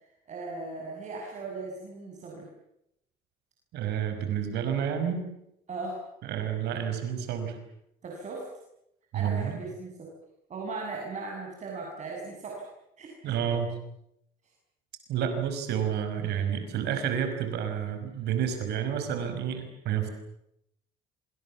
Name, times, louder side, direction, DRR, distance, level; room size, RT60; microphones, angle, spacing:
voice 1, 0.3-2.5 5.7-6.0 8.0-8.4 9.1-10.1 10.5-12.7 13.0-13.5, right 3 dB, 45° right, -1 dB, 7.3 m, -38 dB
voice 2, 3.7-5.2 6.2-7.6 9.1-9.6 13.2-13.7 15.1-20.1, right 8 dB, 80° right, 7 dB, 5.5 m, -30 dB
26.5 x 26.5 x 7.2 m, 0.79 s
cardioid pair, 110°, 17 cm